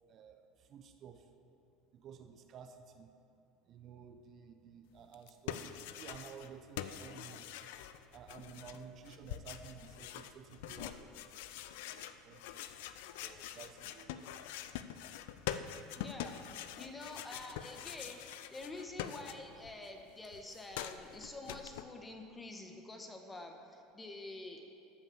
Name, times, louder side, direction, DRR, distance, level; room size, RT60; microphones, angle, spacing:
voice 1, 0.1-1.3 1.9-3.1 3.7-7.5 8.1-11.5 11.9-12.6 13.2-14.3, right 7 dB, 50° right, 7 dB, 0.8 m, -53 dB
sound 1, 5.1-6.5 6.8-19.7 20.0-21.8, left 11 dB, 75° left, 0.5 m, -45 dB
voice 2, 16.0-16.4 16.8-18.2 18.5-24.7, left 2 dB, 15° left, 3 dB, 1.5 m, -47 dB
13.0 x 5.7 x 7.3 m, 2.6 s
hypercardioid pair, 90°, 0 cm